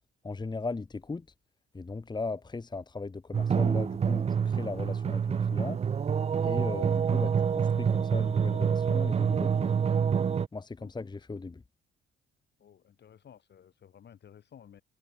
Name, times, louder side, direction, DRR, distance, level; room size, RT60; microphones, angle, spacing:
voice 1, 0.2-1.2 1.7-5.8 6.4-9.8 10.5-11.6, left 3 dB, 20° left, 1.4 m, -38 dB
sound 1, 3.3-10.5, right 7 dB, 30° right, 0.5 m, -27 dB
voice 2, 12.6-14.8, left 9 dB, 60° left, 6.1 m, -55 dB
cardioid pair, 90°, 20 cm